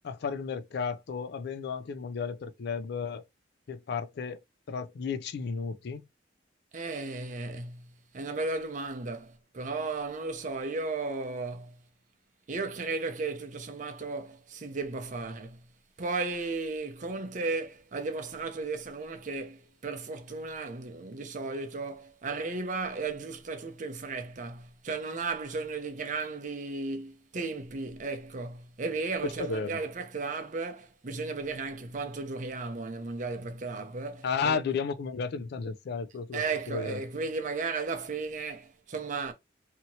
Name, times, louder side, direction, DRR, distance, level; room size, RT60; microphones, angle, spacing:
voice 1, 0.0-3.2 3.7-4.4 4.7-6.0 29.4-29.8 34.2-37.0, left 5 dB, 60° left, 0.4 m, -33 dB
voice 2, 6.7-7.9 8.1-11.8 12.5-15.6 16.0-34.6 36.3-39.3, right 3 dB, 45° right, 0.6 m, -35 dB
2.9 x 2.8 x 2.7 m
head